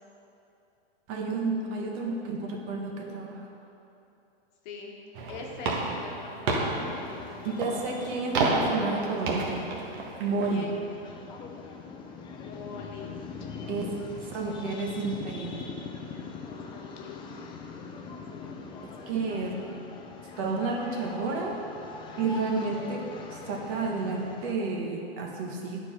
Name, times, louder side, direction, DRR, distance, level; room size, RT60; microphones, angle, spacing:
voice 1, 1.1-3.5 7.4-9.7 10.2-10.7 13.7-15.7 18.8-19.6 20.4-21.6 22.2-23.0 23.3-25.8, right 3 dB, 40° right, 1 dB, 1.1 m, -31 dB
voice 2, 4.6-5.0 5.3-7.8 8.2-8.5 10.5-10.7 12.3-13.1 14.4-15.1 16.5-17.2 18.3-18.6 19.0-19.2 19.5-19.8, left 4 dB, 50° left, 0 dB, 1.3 m, -44 dB
sound 1, 5.1-10.5, right 3 dB, 60° right, 1.4 m, -31 dB
sound 2, 6.8-24.5, left 4 dB, 15° left, 0.5 m, -42 dB
10.5 x 4.7 x 4.4 m, 2.8 s
hypercardioid pair, 130°, 31 cm